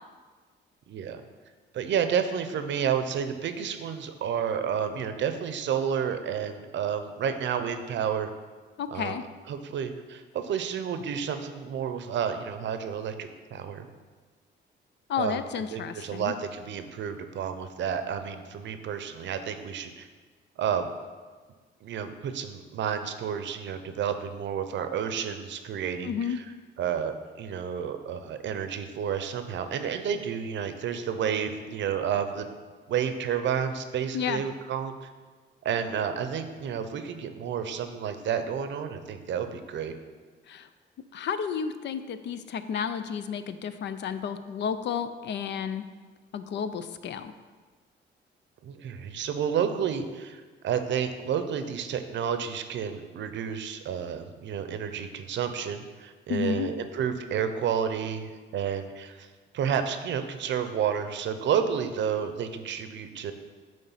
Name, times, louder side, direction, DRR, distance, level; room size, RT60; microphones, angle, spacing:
voice 1, 0.9-1.2 1.7-8.3 8.9-9.2 9.5-13.9 15.2-15.4 15.7-20.1 20.6-20.9 21.8-26.4 26.8-32.5 32.9-35.1 35.6-39.9 48.6-59.3 59.5-63.3, right 8 dB, 65° right, 8 dB, 0.7 m, -30 dB
voice 2, 8.8-9.2 15.1-16.3 26.0-26.4 34.1-34.4 40.5-40.7 41.1-45.9 46.3-47.3 56.3-56.7, left 7 dB, 65° left, 11 dB, 0.5 m, -31 dB
8.8 x 3.2 x 5.6 m, 1.4 s
cardioid pair, 90°, 20 cm